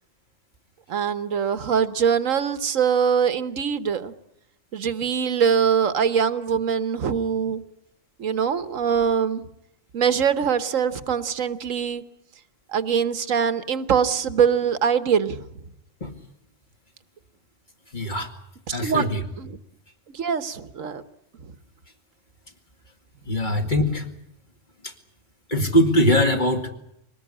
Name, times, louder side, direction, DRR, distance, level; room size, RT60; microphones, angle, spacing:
voice 1, 0.9-4.1 4.7-7.6 8.2-9.4 9.9-12.0 12.7-15.4 18.7-19.1 19.4-19.6 20.1-21.0 21.4-21.5 23.5-23.7, right 7 dB, 85° right, 12 dB, 1.5 m, -23 dB
voice 2, 17.9-18.3 18.7-19.2 23.3-24.1 24.8-24.9 25.5-26.7, equal, 35° left, 2 dB, 2.4 m, -21 dB
23.0 x 19.5 x 10.0 m, 0.79 s
omnidirectional pair, 1.3 m